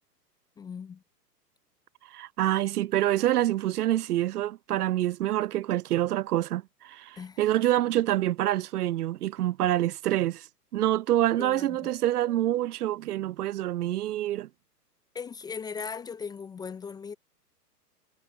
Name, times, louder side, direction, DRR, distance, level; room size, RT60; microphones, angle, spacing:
voice 1, 0.6-1.0 7.2-7.4 11.4-11.8 15.1-17.1, left 6 dB, 10° left, 0.6 m, -38 dB
voice 2, 2.1-10.5 10.7-14.5, right 13 dB, 65° right, 0.7 m, -26 dB
hypercardioid pair, 115°, 49 cm